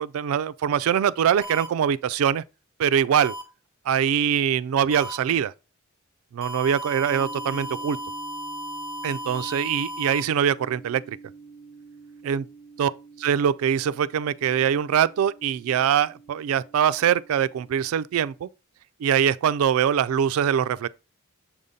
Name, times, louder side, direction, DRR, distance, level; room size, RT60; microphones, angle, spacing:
voice 1, 0.0-2.4 2.8-3.3 3.9-5.5 6.3-8.0 9.0-11.2 12.2-12.4 12.8-12.9 13.2-18.5 19.0-20.9, right 8 dB, 70° right, 0.3 m, -23 dB
sound 1, 1.4-1.7 3.2-3.4 4.9-5.2 6.4-10.2, equal, 85° left, 1.2 m, -35 dB
sound 2, 7.1-18.4, right 4 dB, 20° left, 0.8 m, -46 dB
7.3 x 2.7 x 5.0 m
head